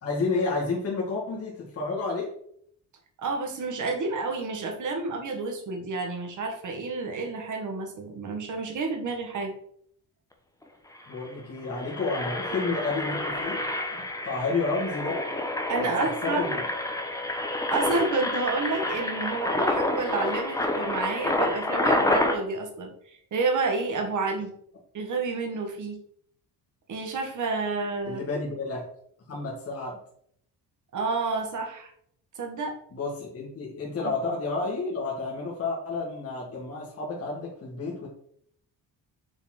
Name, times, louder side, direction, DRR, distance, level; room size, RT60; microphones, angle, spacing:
voice 1, 0.0-2.3 11.1-13.6 13.9-15.2 16.0-16.6 28.1-28.9 29.3-30.0 32.9-38.1, left 3 dB, 35° left, -4 dB, 1.9 m, -30 dB
voice 2, 3.2-9.5 15.7-16.6 17.7-24.5 24.9-26.0 26.9-28.2 30.9-31.9 32.3-32.8 34.0-34.1, right 3 dB, 50° right, 3 dB, 1.6 m, -30 dB
Engine, 10.6-10.7 11.0-11.2 11.6-22.4, left 1 dB, 10° left, 0.9 m, -28 dB
7.0 x 4.1 x 4.3 m, 0.66 s
cardioid pair, 115°, 39 cm